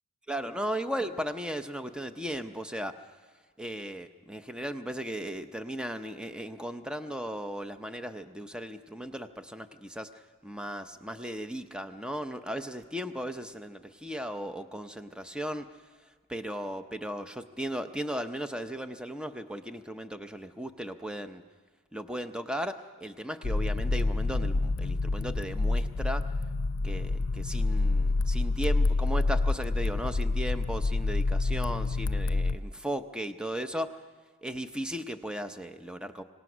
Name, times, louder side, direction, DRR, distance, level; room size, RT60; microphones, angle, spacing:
voice 1, 0.3-3.0 3.6-21.4 21.9-26.3 26.8-34.0 34.4-36.2, equal, 5° right, 9 dB, 0.7 m, -36 dB
sound 1, 23.4-32.6, left 3 dB, 70° left, 0.6 m, -28 dB
26.0 x 18.5 x 6.1 m, 1.4 s
head